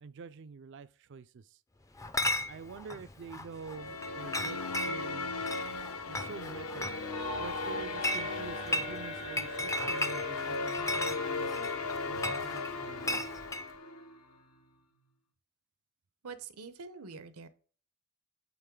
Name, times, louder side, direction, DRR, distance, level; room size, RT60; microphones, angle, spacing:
voice 1, 0.0-1.6 2.5-5.3 6.1-7.0 7.4-11.7 12.1-13.4, right 5 dB, 55° right, 0.4 m, -47 dB
Chatter / Chink clink, 2.0-13.7, left 1 dB, 15° left, 0.4 m, -37 dB
sound 1, 3.6-14.0, left 3 dB, 70° left, 0.8 m, -38 dB
sound 2, 7.1-14.7, left 2 dB, 90° left, 1.6 m, -42 dB
voice 2, 16.2-17.5, right 5 dB, 80° right, 0.8 m, -45 dB
8.8 x 3.9 x 3.7 m
head